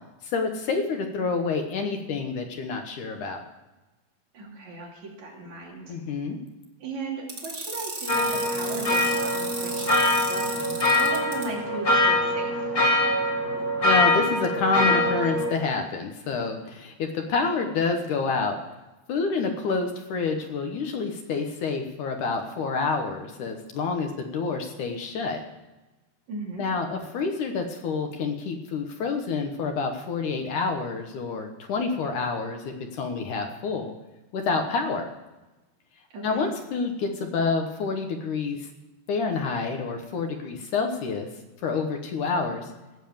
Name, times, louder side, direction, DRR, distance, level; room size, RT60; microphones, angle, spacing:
voice 1, 0.2-3.4 5.9-6.4 13.8-18.6 19.1-25.4 26.6-33.9 34.3-35.1 36.2-38.7 39.1-41.3 41.6-42.7, left 4 dB, 65° left, 4 dB, 2.0 m, -28 dB
voice 2, 4.3-6.0 6.8-12.7 26.3-26.6 36.1-36.5, right 2 dB, 45° right, -3 dB, 3.8 m, -37 dB
sound 1, 7.3-11.4, right 3 dB, 25° right, 1.4 m, -34 dB
sound 2, 8.1-15.5, left 1 dB, 40° left, 1.4 m, -23 dB
17.0 x 7.3 x 7.1 m, 1.1 s
omnidirectional pair, 4.8 m